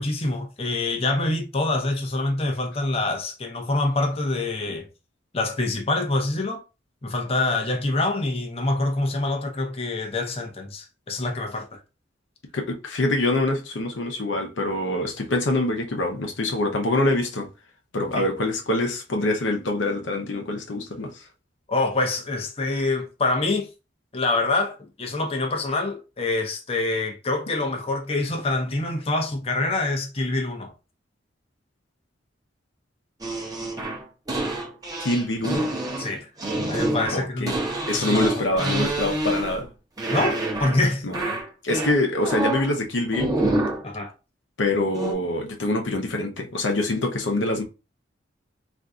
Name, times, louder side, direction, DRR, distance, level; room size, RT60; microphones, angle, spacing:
voice 1, 0.0-4.9 5.3-6.6 7.0-11.8 18.2-18.3 21.7-23.7 24.1-30.7 36.0-36.3 36.7-37.6 37.9-38.6 40.1-41.1 43.8-44.1, left 2 dB, 35° left, 0.6 m, -26 dB
voice 2, 12.5-17.5 17.9-21.1 35.0-35.7 37.1-37.6 37.9-39.7 41.0-41.1 41.6-43.4 44.6-47.6, left 2 dB, 80° left, 0.7 m, -25 dB
sound 1, 33.2-39.7 40.0-40.8 41.1-42.7 43.1-43.9 44.9-45.1, right 1 dB, 20° right, 0.8 m, -27 dB
3.8 x 2.5 x 2.3 m
head